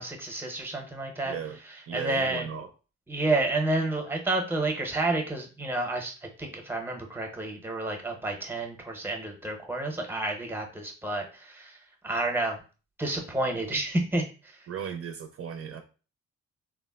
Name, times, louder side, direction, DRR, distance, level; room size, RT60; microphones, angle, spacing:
voice 1, 0.0-1.3 1.9-2.5 3.1-6.1 6.4-11.8 12.0-12.6 13.0-14.2, right 2 dB, 5° right, 0.7 m, -30 dB
voice 2, 1.2-1.6 1.9-2.7 14.7-15.8, right 7 dB, 50° right, 0.5 m, -36 dB
3.5 x 2.0 x 2.3 m
cardioid pair, 90°, 30 cm